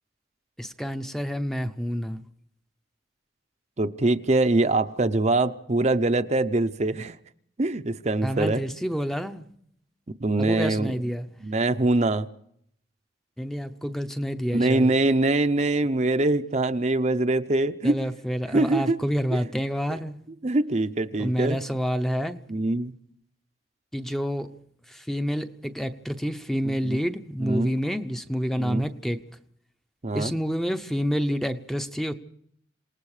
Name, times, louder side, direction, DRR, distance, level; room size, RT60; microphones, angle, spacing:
voice 1, 0.6-2.2 8.2-9.5 10.4-11.3 13.4-14.9 17.8-20.2 21.2-22.4 23.9-24.5 24.9-29.2 30.1-32.1, equal, ahead, 0.8 m, -28 dB
voice 2, 3.8-7.2 7.6-8.6 10.2-10.9 11.4-12.3 14.5-17.9 18.5-19.0 20.4-21.6 22.5-22.9 26.6-27.0 27.4-27.7 28.6-28.8 30.0-30.3, right 2 dB, 35° right, 0.7 m, -23 dB
27.5 x 19.0 x 4.9 m
head